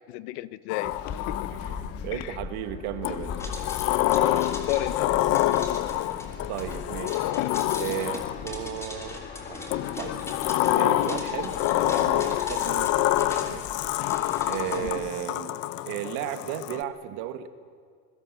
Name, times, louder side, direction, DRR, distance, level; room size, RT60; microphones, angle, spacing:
voice 1, 0.1-0.9 1.3-1.5 2.1-2.4 4.7-5.2 14.8-15.0, left 15 dB, 75° left, 15 dB, 1.1 m, -32 dB
Sliding door, 0.7-2.1 3.0-8.6 9.7-16.8, left 14 dB, 45° left, 0.8 m, -27 dB
sound 1, 0.9-15.0, left 5 dB, 25° left, 1.6 m, -40 dB
voice 2, 1.5-3.4 6.5-7.2 7.8-10.2 10.7-13.7 14.5-15.5 15.9-17.5, right 12 dB, 60° right, 9 dB, 1.9 m, -35 dB
sound 2, 3.4-14.8, left 1 dB, 10° left, 3.0 m, -42 dB
26.0 x 22.0 x 7.7 m, 2.1 s
cardioid pair, 170°, 34 cm